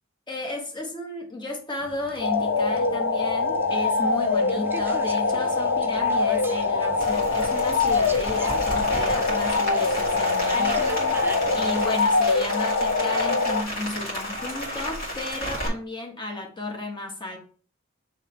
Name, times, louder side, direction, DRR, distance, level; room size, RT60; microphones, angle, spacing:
voice 1, 0.3-11.3 11.5-17.4, left 2 dB, 25° left, 1.3 m, -33 dB
sound 1, 1.8-11.9, right 2 dB, 10° right, 0.4 m, -41 dB
sound 2, 2.2-13.6, left 4 dB, 90° left, 0.6 m, -23 dB
Rain, 7.0-15.7, equal, 50° left, 2.0 m, -33 dB
6.9 x 3.2 x 4.4 m
head